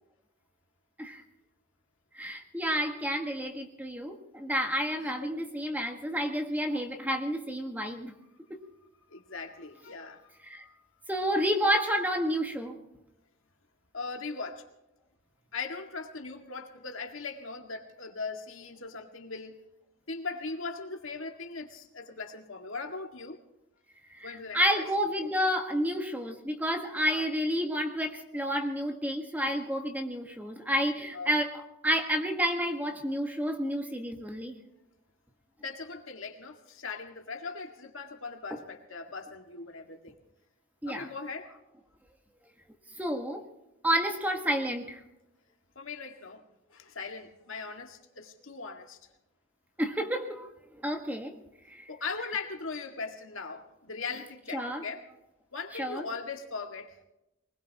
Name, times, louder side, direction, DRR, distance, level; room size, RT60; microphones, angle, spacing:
voice 1, 2.1-8.1 8.5-8.6 10.4-10.6 11.1-12.7 24.1-34.6 38.5-38.6 40.8-41.1 43.0-43.4 43.8-45.0 49.8-50.5 50.8-51.3 51.7-51.9 54.5-54.8 55.8-56.1, equal, 10° right, 4 dB, 1.5 m, -30 dB
voice 2, 5.0-5.4 9.1-10.9 13.9-14.7 15.5-19.6 20.1-23.4 24.2-24.9 25.2-25.3 27.1-27.3 31.1-31.3 35.6-40.1 40.9-41.5 45.8-46.4 46.7-49.0 51.9-55.0 55.5-57.0, left 4 dB, 65° left, 4 dB, 2.0 m, -39 dB
23.5 x 20.5 x 3.0 m, 0.91 s
head